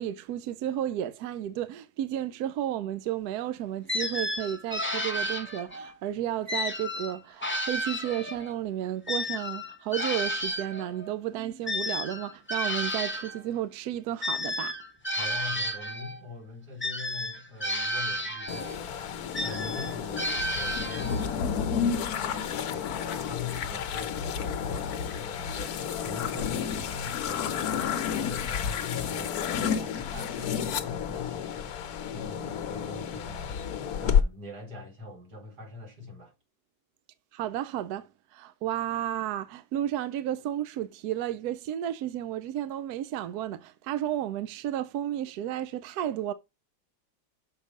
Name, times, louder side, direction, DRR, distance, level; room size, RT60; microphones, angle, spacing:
voice 1, 0.0-14.8 37.3-46.3, right 12 dB, 75° right, 0.9 m, -32 dB
sound 1, 3.9-5.9 6.5-8.6 9.1-13.4 14.2-16.2 16.8-18.8 19.3-21.3, left 1 dB, 10° left, 0.8 m, -32 dB
voice 2, 15.1-19.1 19.4-31.8 32.1-36.3, left 4 dB, 60° right, 3.1 m, -42 dB
sound 2, 18.5-34.2, left 7 dB, 65° left, 1.1 m, -31 dB
6.6 x 4.9 x 5.1 m
omnidirectional pair, 2.0 m